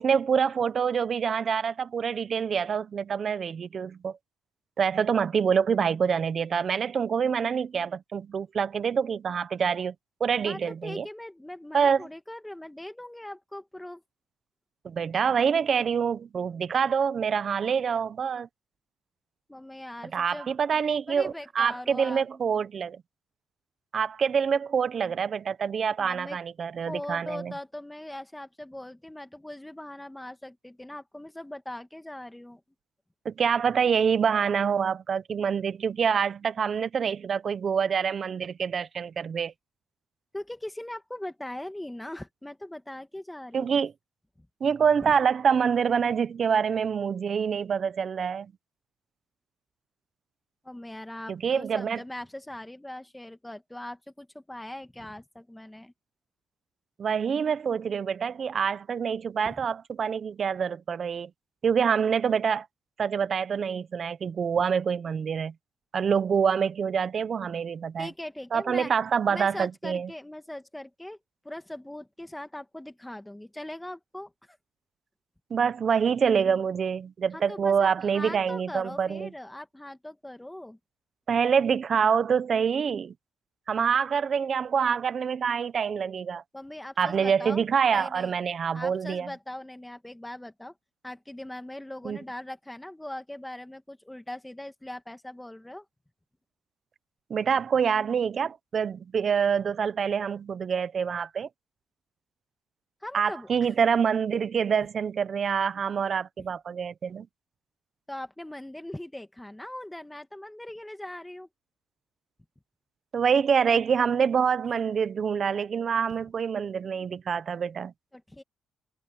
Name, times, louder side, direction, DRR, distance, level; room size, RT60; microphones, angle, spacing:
voice 1, 0.0-4.2 4.8-9.9 10.2-11.1 11.7-12.1 14.8-18.5 20.1-23.0 23.9-27.5 33.2-39.5 43.5-43.9 44.6-48.5 51.3-52.0 57.0-61.3 61.6-62.7 63.0-65.5 65.9-68.1 68.5-70.1 75.5-79.3 81.3-83.1 83.7-86.4 87.0-89.3 92.0-92.2 97.3-101.5 103.1-107.3 113.1-117.9, right 7 dB, 50° right, 0.9 m, -26 dB
voice 2, 10.4-14.0 19.5-20.5 21.1-22.3 26.0-26.4 26.9-32.6 40.3-43.7 45.0-45.1 50.6-55.9 59.4-59.7 68.0-68.9 69.3-71.2 71.4-74.3 77.3-80.8 86.5-88.3 88.7-90.7 91.0-95.8 103.0-103.7 108.1-111.5 118.1-118.4, left 1 dB, 10° left, 1.9 m, -40 dB
cardioid pair, 90°, 0 cm